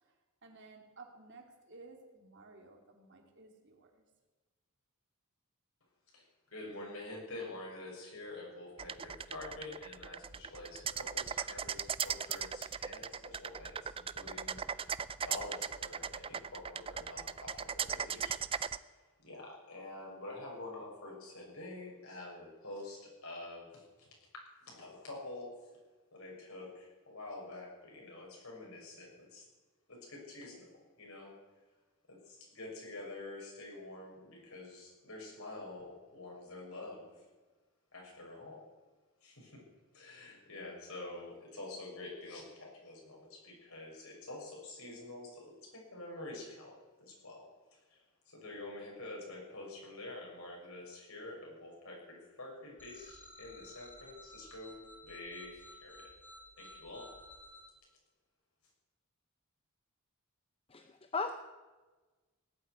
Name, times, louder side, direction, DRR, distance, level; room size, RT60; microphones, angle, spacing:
voice 1, 0.4-4.0, right 3 dB, 55° right, 3 dB, 2.7 m, -55 dB
voice 2, 6.1-14.9 15.2-24.1 24.6-25.5 26.1-29.4 29.9-30.7 31.0-31.3 32.1-37.1 37.9-38.6 39.2-39.6 39.9-47.4 47.7-48.0 48.3-56.1 56.6-57.1, left 2 dB, 70° left, -2 dB, 6.6 m, -47 dB
sound 1, 8.8-18.8, right 7 dB, 25° right, 0.4 m, -38 dB
sound 2, 52.8-57.6, left 1 dB, 10° left, 4.1 m, -54 dB
voice 3, 60.7-61.3, left 4 dB, 25° left, 7 dB, 0.7 m, -36 dB
18.5 x 8.2 x 9.5 m, 1.3 s
head